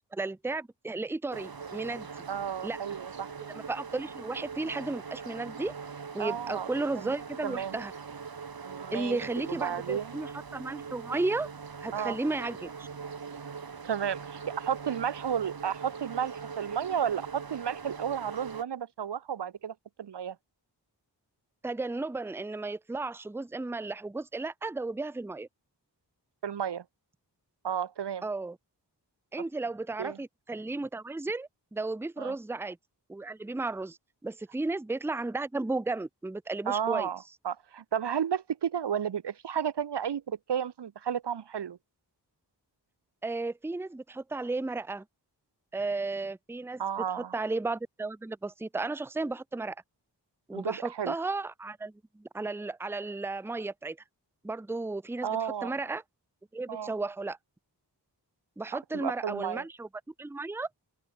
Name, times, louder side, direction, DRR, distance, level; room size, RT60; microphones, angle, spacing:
voice 1, 0.0-2.1 2.6-2.8 3.5-5.7 6.1-7.9 8.9-11.5 11.8-12.9 21.6-25.5 28.2-28.6 29.3-32.8 33.1-37.1 43.2-45.0 45.7-46.8 47.2-49.8 50.5-54.0 54.4-55.3 55.6-56.0 56.5-57.4 58.6-59.9 60.2-60.7, right 3 dB, 5° right, 0.5 m, -34 dB
sound 1, 1.3-18.6, right 5 dB, 55° right, 1.3 m, -42 dB
voice 2, 2.3-3.3 6.2-6.7 7.0-7.1 7.4-7.8 8.6-9.2 9.5-10.1 11.9-12.2 13.5-13.6 13.8-20.4 26.4-26.8 27.6-28.3 30.0-30.2 32.2-32.4 36.7-41.8 46.8-47.3 50.5-51.1 55.2-55.7 56.7-56.9 58.9-59.6, right 8 dB, 75° right, 0.7 m, -32 dB
open air
wide cardioid pair, 75°, 42 cm